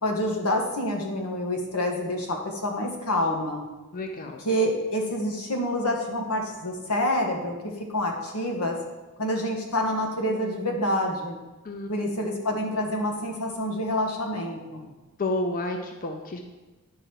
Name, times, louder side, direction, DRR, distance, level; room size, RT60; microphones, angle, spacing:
voice 1, 0.0-3.6 4.4-7.5 7.9-8.8 9.2-11.4 11.9-14.9, left 1 dB, 90° left, 1 dB, 1.5 m, -27 dB
voice 2, 3.9-4.4 11.6-11.9 15.2-16.4, left 2 dB, 40° left, 4 dB, 0.6 m, -30 dB
10.0 x 5.0 x 4.5 m, 1.2 s
head